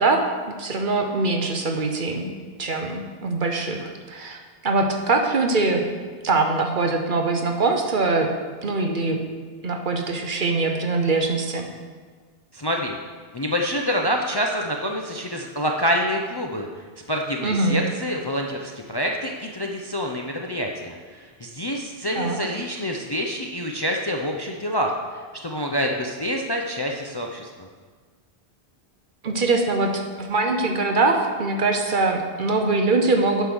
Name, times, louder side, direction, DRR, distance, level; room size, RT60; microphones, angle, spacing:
voice 1, 0.0-2.3 2.6-5.9 6.2-8.3 8.6-9.2 9.6-11.7 17.4-17.8 22.1-22.4 29.2-33.4, right 3 dB, 50° right, 3 dB, 1.0 m, -23 dB
voice 2, 12.5-13.0 13.3-16.7 17.1-25.0 25.4-27.5, equal, 30° left, 1 dB, 0.5 m, -27 dB
8.4 x 5.7 x 6.1 m, 1.5 s
omnidirectional pair, 1.1 m